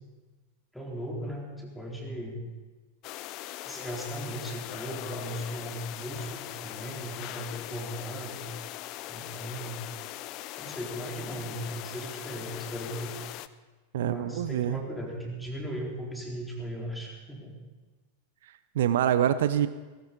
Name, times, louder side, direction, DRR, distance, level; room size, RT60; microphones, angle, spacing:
voice 1, 0.7-2.4 3.7-8.5 9.1-9.8 10.6-13.2 14.0-17.5, right 1 dB, 5° left, -2 dB, 4.0 m, -37 dB
sound 1, 3.0-13.5, left 15 dB, 40° left, 0.5 m, -40 dB
voice 2, 13.9-14.8 18.7-19.7, right 10 dB, 55° right, 13 dB, 0.6 m, -25 dB
18.5 x 16.5 x 4.3 m, 1.3 s
figure-of-eight pair, 90°, 0 cm